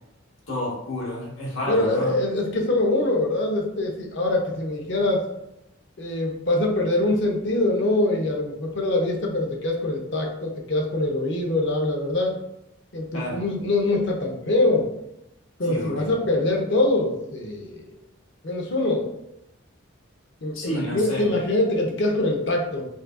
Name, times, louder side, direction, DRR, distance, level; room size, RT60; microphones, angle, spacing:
voice 1, 0.5-2.2 13.1-13.4 15.6-16.1 20.5-21.3, left 1 dB, 85° left, -5 dB, 1.5 m, -30 dB
voice 2, 1.7-5.2 6.0-12.3 12.9-14.9 15.6-17.9 18.4-19.1 20.4-22.9, left 2 dB, 60° left, 1 dB, 0.7 m, -24 dB
5.2 x 2.3 x 2.4 m, 0.85 s
head